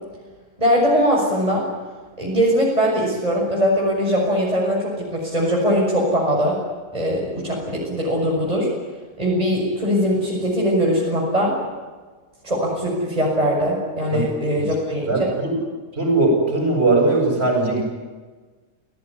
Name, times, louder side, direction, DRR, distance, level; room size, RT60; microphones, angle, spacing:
voice 1, 0.6-1.7 2.2-6.6 6.9-8.7 9.2-11.5 12.4-15.3, equal, 25° right, -3 dB, 6.8 m, -21 dB
voice 2, 15.0-15.6 15.9-17.8, right 2 dB, 40° right, 1 dB, 8.3 m, -19 dB
29.5 x 18.0 x 9.9 m, 1.4 s
omnidirectional pair, 1.6 m